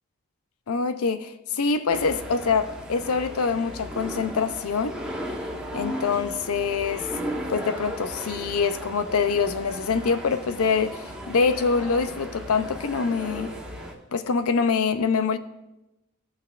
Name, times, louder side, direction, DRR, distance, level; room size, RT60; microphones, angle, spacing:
voice 1, 0.7-5.0 5.7-7.1 7.5-13.5 14.1-15.4, left 5 dB, 85° left, 0.6 m, -25 dB
sound 1, 1.9-13.9, equal, 5° right, 1.1 m, -36 dB
17.0 x 5.9 x 2.5 m
head